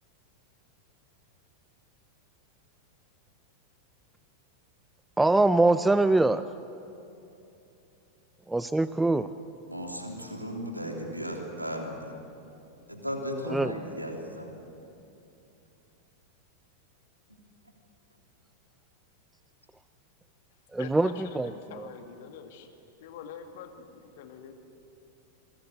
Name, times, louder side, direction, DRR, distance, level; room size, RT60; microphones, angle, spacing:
voice 1, 5.2-6.4 8.5-9.3 13.5-13.7 20.7-21.5 21.8-21.9, right 2 dB, 5° right, 14 dB, 0.5 m, -23 dB
voice 2, 9.7-12.1 12.9-14.5 17.3-17.4, equal, 85° right, 1 dB, 3.3 m, -36 dB
voice 3, 20.8-22.7 23.0-24.5, left 7 dB, 55° left, 5 dB, 2.4 m, -45 dB
28.0 x 21.5 x 8.0 m, 2.8 s
figure-of-eight pair, 90°, 0 cm